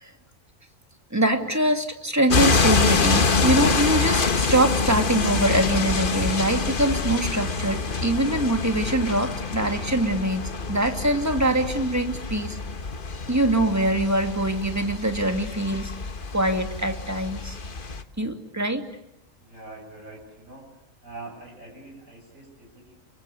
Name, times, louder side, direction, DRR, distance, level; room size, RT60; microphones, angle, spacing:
voice 1, 1.1-12.6 13.3-15.9 16.3-17.6 18.2-18.8, right 1 dB, 10° right, 5 dB, 2.5 m, -23 dB
sound 1, 2.3-18.0, left 4 dB, 45° left, 1.5 m, -26 dB
voice 2, 19.4-20.7 21.0-22.9, right 2 dB, 85° right, 1 dB, 7.7 m, -43 dB
29.5 x 24.0 x 8.4 m, 0.80 s
omnidirectional pair, 1.3 m